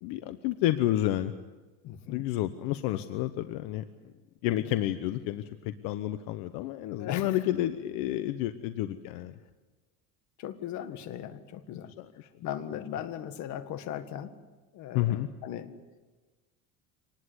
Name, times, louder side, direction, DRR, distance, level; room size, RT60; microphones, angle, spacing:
voice 1, 0.0-1.3 2.1-3.8 4.4-9.4 11.7-12.3 14.9-15.3, left 14 dB, 70° left, 11 dB, 1.0 m, -30 dB
voice 2, 1.8-2.2 7.0-7.4 10.4-11.9 12.4-14.3 14.7-15.7, left 10 dB, 50° left, 10 dB, 1.7 m, -38 dB
25.0 x 19.5 x 8.2 m, 1.3 s
cardioid pair, 150°, 36 cm